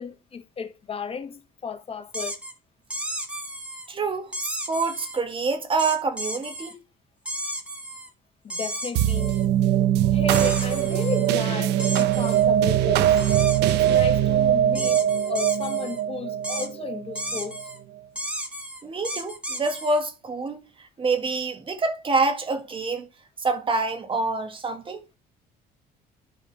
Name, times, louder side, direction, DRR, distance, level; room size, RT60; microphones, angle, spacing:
voice 1, 0.0-2.4 8.4-9.4 10.1-13.2 13.7-17.7, left 6 dB, 35° left, 1.3 m, -34 dB
sound 1, 2.1-2.5 2.9-3.9 4.3-5.2 5.8-6.7 7.3-8.1 8.5-9.5 10.3-11.3 11.8-12.4 13.2-14.1 14.7-16.0 16.4-16.7 17.2-17.8 18.2-20.0, right 1 dB, 5° right, 1.9 m, -33 dB
voice 2, 3.9-6.8 18.8-23.1 23.4-25.0, right 3 dB, 30° right, 1.7 m, -27 dB
sound 2, 9.0-17.7, right 11 dB, 80° right, 0.7 m, -22 dB
12.0 x 4.1 x 4.7 m
cardioid pair, 110°, 17 cm